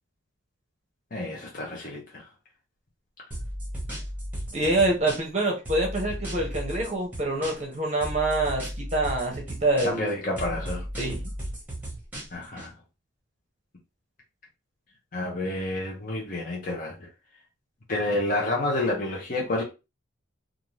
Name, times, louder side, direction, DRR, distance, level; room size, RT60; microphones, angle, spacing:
voice 1, 1.1-2.2 9.8-10.9 12.3-12.7 15.1-17.1 17.9-19.6, left 2 dB, 40° left, 0.7 m, -29 dB
sound 1, 3.3-5.4 5.7-7.7 8.0-10.1 10.4-12.7, equal, 10° right, 1.0 m, -35 dB
voice 2, 4.5-10.1 11.0-11.2, right 2 dB, 35° right, 0.7 m, -26 dB
2.5 x 2.4 x 3.1 m
head